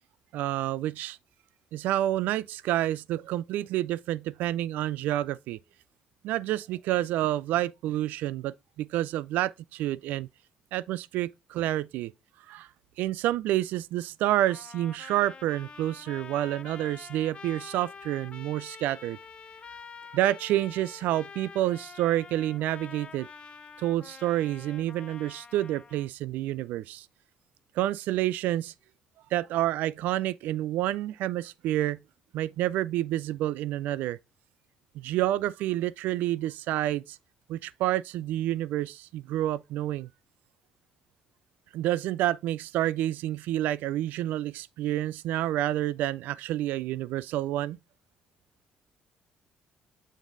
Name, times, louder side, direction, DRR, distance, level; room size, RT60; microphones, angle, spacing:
voice 1, 0.3-1.2 1.7-5.6 6.2-10.3 10.7-12.1 12.5-12.7 13.0-19.2 20.1-23.3 23.8-27.1 27.8-28.7 29.3-32.0 32.3-34.2 34.9-37.2 37.5-40.1 41.7-47.8, right 14 dB, 85° right, 0.4 m, -29 dB
Trumpet, 14.4-26.1, left 5 dB, 40° left, 0.7 m, -47 dB
7.3 x 3.7 x 3.8 m
cardioid pair, 90°, 3 cm